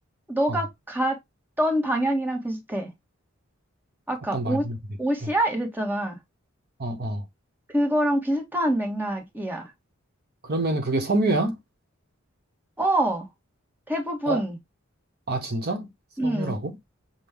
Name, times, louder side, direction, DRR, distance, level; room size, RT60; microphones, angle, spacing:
voice 1, 0.3-1.2 1.6-2.9 4.1-4.7 5.0-6.2 7.7-9.7 12.8-13.3 13.9-14.6 16.2-16.5, right 1 dB, 10° right, 1.2 m, -25 dB
voice 2, 4.3-4.8 5.2-5.3 6.8-7.2 10.4-11.6 14.3-14.4 15.3-15.9 16.2-16.7, right 2 dB, 50° right, 1.0 m, -26 dB
6.0 x 2.2 x 3.5 m
head